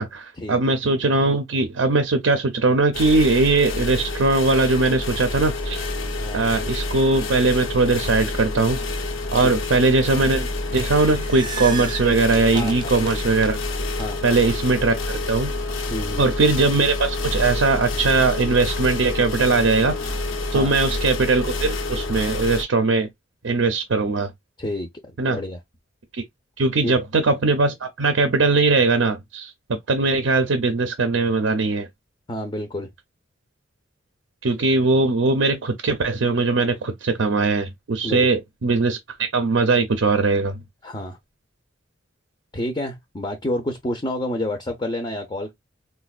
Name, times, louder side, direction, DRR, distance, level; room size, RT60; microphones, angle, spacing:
voice 1, 0.0-5.8 6.3-8.8 9.3-13.6 14.2-15.0 15.3-15.5 16.2-20.1 20.5-23.1 23.4-24.3 25.2-25.4 26.6-29.5 29.9-31.9 34.4-40.6, right 3 dB, 70° right, 0.5 m, -20 dB
Fan Melbourne Central Subwsy Toilet, 2.9-22.6, left 2 dB, 85° left, 0.7 m, -28 dB
sound 1, 10.9-14.1, right 6 dB, 25° right, 0.5 m, -35 dB
voice 2, 15.9-16.3 20.5-20.7 24.6-24.9 25.3-25.6 26.8-27.0 32.3-32.9 38.0-38.3 40.8-41.2 42.5-45.5, left 1 dB, 25° left, 0.5 m, -28 dB
4.2 x 2.2 x 2.3 m
head